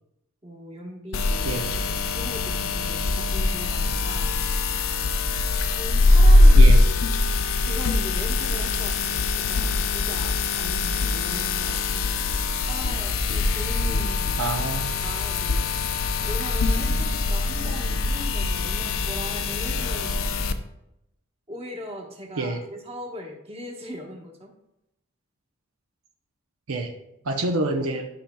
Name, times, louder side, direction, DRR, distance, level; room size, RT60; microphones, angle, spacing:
voice 1, 0.4-1.7 2.1-4.4 5.7-6.6 7.6-12.1 12.7-14.4 15.0-15.7 16.2-20.4 21.5-24.5, equal, 30° right, 0 dB, 1.2 m, -39 dB
sound 1, 1.1-20.5, left 2 dB, 70° left, 0.5 m, -22 dB
voice 2, 14.4-14.9 22.4-22.6 26.7-26.9 27.2-28.1, right 2 dB, 80° right, 4 dB, 0.7 m, -27 dB
11.5 x 5.7 x 2.3 m, 0.86 s
head